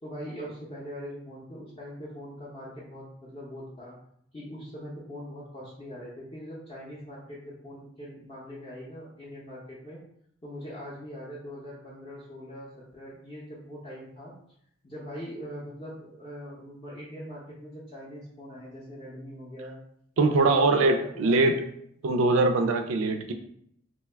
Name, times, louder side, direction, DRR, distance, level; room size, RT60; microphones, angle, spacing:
voice 1, 0.0-3.9 4.3-10.0 10.4-14.3 14.8-19.8 20.2-21.4, equal, 25° left, -7 dB, 0.5 m, -42 dB
voice 2, 20.2-21.6 22.0-23.3, right 3 dB, 80° right, 6 dB, 0.4 m, -22 dB
2.7 x 2.2 x 3.3 m, 0.70 s
head